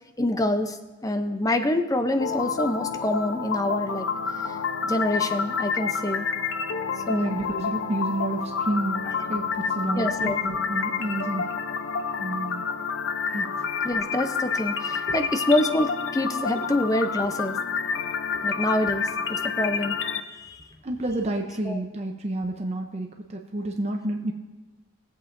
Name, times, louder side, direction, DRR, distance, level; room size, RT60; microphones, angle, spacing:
voice 1, 0.2-0.8 1.0-4.1 4.5-4.6 4.8-6.3 7.1-7.4 10.0-10.4 13.8-17.5 18.4-19.0 19.3-20.0 20.3-20.6 21.7-21.8, left 1 dB, 20° left, 8 dB, 0.6 m, -26 dB
sound 1, 2.2-20.2, left 5 dB, 75° left, 0.6 m, -29 dB
voice 2, 7.1-11.6 12.2-12.7 13.3-13.5 15.1-15.2 20.8-24.3, right 1 dB, 35° right, 2 dB, 0.6 m, -30 dB
21.5 x 7.9 x 2.6 m, 1.2 s
head